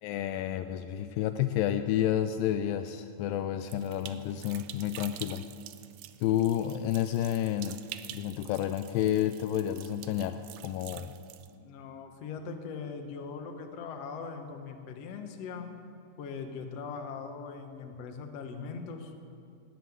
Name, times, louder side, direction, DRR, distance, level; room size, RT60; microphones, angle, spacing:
voice 1, 0.0-5.4 6.2-7.8 8.1-11.1, left 11 dB, 90° left, 10 dB, 2.0 m, -30 dB
sound 1, 3.7-11.5, right 13 dB, 85° right, 2.0 m, -47 dB
voice 2, 11.5-15.7 16.2-19.1, left 5 dB, 60° left, 5 dB, 1.7 m, -40 dB
17.5 x 7.9 x 9.4 m, 2.4 s
omnidirectional pair, 4.5 m